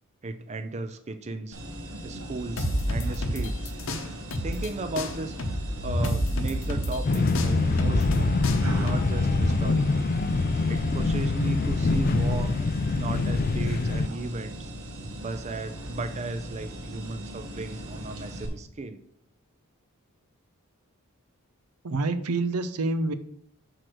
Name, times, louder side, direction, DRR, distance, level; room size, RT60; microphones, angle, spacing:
voice 1, 0.2-1.6 2.0-3.7 4.4-5.4 5.8-8.3 8.7-10.1 10.7-12.6 12.9-14.7 15.2-19.0, right 2 dB, 30° right, 10 dB, 0.4 m, -35 dB
sound 1, 1.5-18.5, right 1 dB, 75° right, 1.9 m, -38 dB
sound 2, 2.6-4.7 5.0-9.5, equal, 60° left, 0.8 m, -28 dB
sound 3, 7.0-14.1, left 3 dB, 40° left, 0.4 m, -25 dB
voice 2, 21.8-23.1, right 3 dB, 90° right, 11 dB, 0.7 m, -27 dB
6.3 x 4.8 x 6.0 m, 0.67 s
head